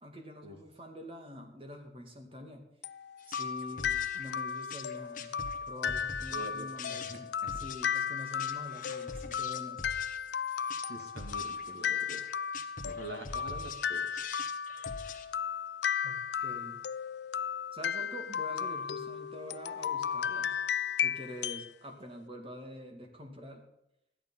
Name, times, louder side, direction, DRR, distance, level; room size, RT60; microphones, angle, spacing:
voice 1, 0.0-2.7 3.3-9.8 16.0-16.8 17.7-20.6 21.0-23.6, left 1 dB, 30° right, 4 dB, 2.3 m, -46 dB
sound 1, 2.8-21.7, left 7 dB, 70° left, 0.4 m, -35 dB
sound 2, 3.2-15.2, left 4 dB, 45° left, 1.3 m, -45 dB
voice 2, 6.3-7.5 10.9-12.2 12.8-14.3, right 1 dB, 70° right, 4 dB, 2.5 m, -45 dB
14.0 x 11.0 x 5.7 m, 0.81 s
head